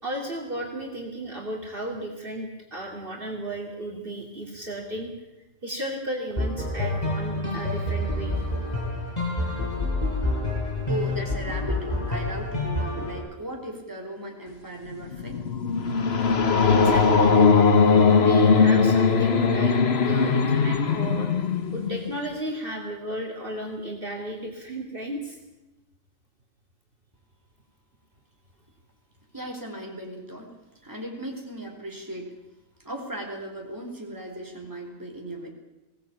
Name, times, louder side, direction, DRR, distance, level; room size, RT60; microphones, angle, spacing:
voice 1, 0.0-5.1 5.6-8.4 16.7-17.4 17.9-19.8 20.0-21.5 21.7-25.4, right 2 dB, 45° right, 0 dB, 3.0 m, -33 dB
sound 1, 6.4-13.2, left 2 dB, 30° left, 7.2 m, -28 dB
voice 2, 10.6-15.5 29.3-30.6 30.8-32.4 32.8-35.5, right 1 dB, 15° right, 1 dB, 4.2 m, -37 dB
sound 2, 14.9-22.3, left 5 dB, 55° left, 1.5 m, -20 dB
22.0 x 17.5 x 8.7 m, 0.99 s
omnidirectional pair, 1.3 m